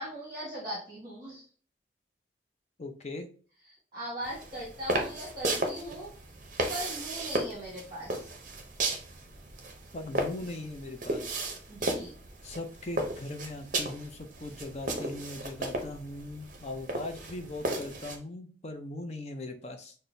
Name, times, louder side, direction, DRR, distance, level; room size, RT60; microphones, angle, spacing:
voice 1, 0.0-1.4 3.9-6.1 6.7-8.3 11.7-12.1, equal, 25° right, -7 dB, 1.5 m, -39 dB
voice 2, 2.8-3.3 9.9-11.4 12.4-20.0, left 2 dB, 35° left, 5 dB, 0.5 m, -40 dB
sound 1, 4.2-18.2, right 2 dB, 45° right, 0.6 m, -35 dB
6.0 x 2.2 x 2.6 m, 0.41 s
head